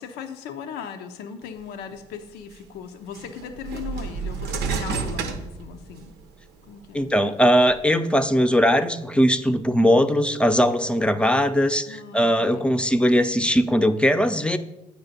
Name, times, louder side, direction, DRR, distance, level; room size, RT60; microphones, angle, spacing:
voice 1, 0.0-6.1 6.7-7.1 11.9-12.7, left 7 dB, 80° left, 7 dB, 0.6 m, -38 dB
sound 1, 2.1-2.2 3.1-6.2 6.7-7.8, right 5 dB, 80° right, 0.6 m, -30 dB
voice 2, 6.9-14.6, equal, 5° left, 8 dB, 0.6 m, -20 dB
8.1 x 5.0 x 4.0 m, 0.97 s
hypercardioid pair, 55°, 17 cm